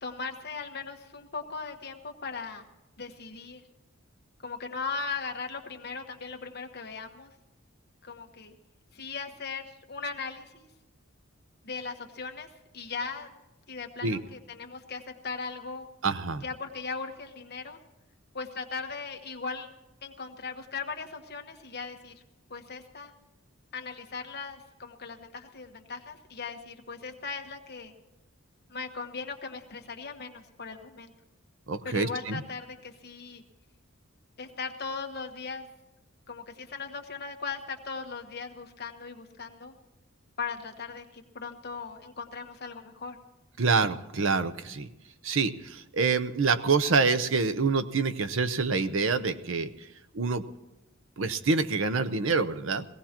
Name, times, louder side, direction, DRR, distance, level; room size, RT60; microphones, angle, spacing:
voice 1, 0.0-2.6 3.0-3.6 4.4-7.3 8.0-8.5 8.9-10.7 11.6-12.5 12.7-13.3 13.7-15.9 16.4-17.8 18.3-19.7 20.0-22.1 22.5-23.1 23.7-27.9 28.7-31.1 31.8-33.4 34.4-35.7 36.3-39.7 40.4-43.2, left 4 dB, 50° left, 4 dB, 1.2 m, -38 dB
voice 2, 16.0-16.4 31.7-32.4 43.6-44.9 45.2-49.7 50.1-50.4 51.2-52.9, right 4 dB, 65° right, 11 dB, 0.7 m, -26 dB
22.0 x 17.0 x 2.9 m, 0.98 s
head